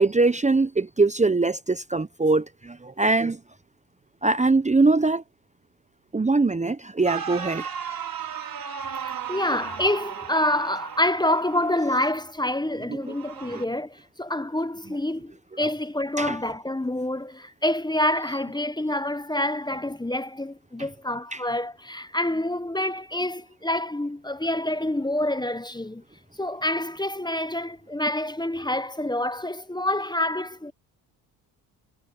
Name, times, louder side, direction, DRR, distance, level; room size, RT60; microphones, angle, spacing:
voice 1, 0.0-3.4 4.2-5.2 6.1-7.7 12.9-13.1 13.5-13.6 15.6-15.7 16.2-16.4 20.8-20.9 21.3-21.4, right 3 dB, 15° right, 1.1 m, -22 dB
sound 1, 7.1-12.2 13.0-13.6, right 7 dB, 45° right, 5.2 m, -35 dB
voice 2, 8.9-15.3 15.6-26.0 26.4-30.7, left 1 dB, 10° left, 1.3 m, -27 dB
hypercardioid pair, 55°, 50 cm